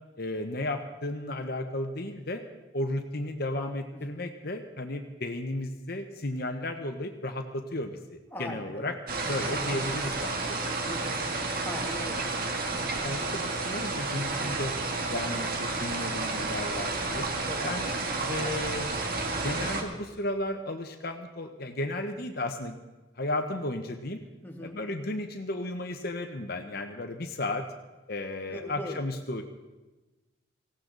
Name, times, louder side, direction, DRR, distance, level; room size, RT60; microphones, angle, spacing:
voice 1, 0.2-2.4 2.7-8.0 8.4-8.9 9.3-10.6 12.1-12.2 12.7-14.7 15.1-17.3 17.6-17.9 18.3-18.9 19.4-22.8 23.2-24.2 24.6-27.6 28.1-29.4, left 1 dB, 50° left, 5 dB, 1.0 m, -34 dB
voice 2, 3.9-4.2 8.3-9.0 10.8-11.3 11.6-12.3 17.4-17.8 18.1-18.6 24.4-24.8 28.5-29.0, left 1 dB, 10° left, 1 dB, 1.5 m, -41 dB
sound 1, 9.1-19.8, right 3 dB, 45° right, 1.7 m, -31 dB
19.0 x 16.5 x 4.0 m, 1.2 s
head